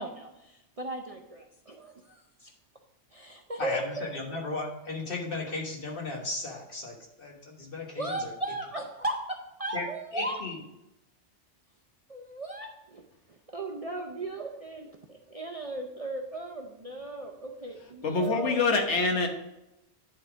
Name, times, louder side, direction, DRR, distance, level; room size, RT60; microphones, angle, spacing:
voice 1, 0.0-2.5 3.1-4.1 7.9-10.3 12.1-13.0 13.3-18.6, right 2 dB, 40° right, 2 dB, 0.6 m, -37 dB
voice 2, 3.6-8.3 9.7-9.9 10.1-10.6, left 3 dB, 50° left, -1 dB, 1.6 m, -35 dB
voice 3, 18.0-19.3, left 3 dB, 75° left, 3 dB, 1.4 m, -25 dB
10.5 x 3.9 x 4.7 m, 0.90 s
omnidirectional pair, 1.2 m